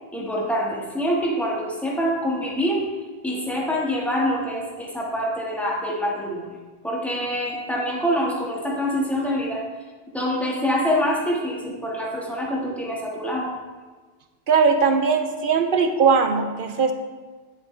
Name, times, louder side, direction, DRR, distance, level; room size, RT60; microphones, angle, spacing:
voice 1, 0.1-2.8 3.2-6.5 6.8-9.6 10.1-13.5, equal, ahead, -3 dB, 1.3 m, -25 dB
voice 2, 14.5-16.9, right 5 dB, 55° right, 7 dB, 0.7 m, -19 dB
9.8 x 7.2 x 3.2 m, 1.4 s
omnidirectional pair, 1.2 m